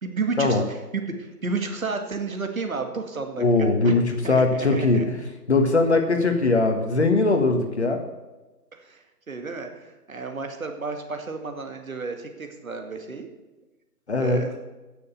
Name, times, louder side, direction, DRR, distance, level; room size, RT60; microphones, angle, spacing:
voice 1, 0.0-4.0 4.2-5.1 8.7-9.0 9.3-13.3 14.2-14.5, right 4 dB, 55° right, 5 dB, 2.3 m, -32 dB
voice 2, 3.4-8.0 14.1-14.4, left 3 dB, 45° left, 5 dB, 1.6 m, -21 dB
15.5 x 6.9 x 7.1 m, 1.1 s
hypercardioid pair, 175°, 48 cm